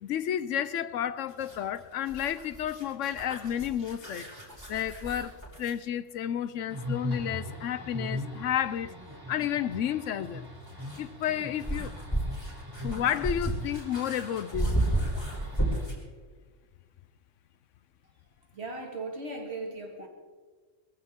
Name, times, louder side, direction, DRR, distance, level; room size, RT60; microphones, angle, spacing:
voice 1, 0.0-4.3 4.7-8.9 9.3-10.5 11.0-11.9 12.8-14.7, left 10 dB, 80° left, 1.0 m, -31 dB
sound 1, 1.3-5.8 8.2-8.3 10.3-16.1, right 1 dB, 20° left, 4.5 m, -33 dB
sound 2, 6.7-15.9, left 1 dB, 15° right, 2.2 m, -40 dB
voice 2, 18.5-20.1, right 2 dB, 55° right, 2.2 m, -37 dB
21.5 x 15.0 x 3.7 m
omnidirectional pair, 1.3 m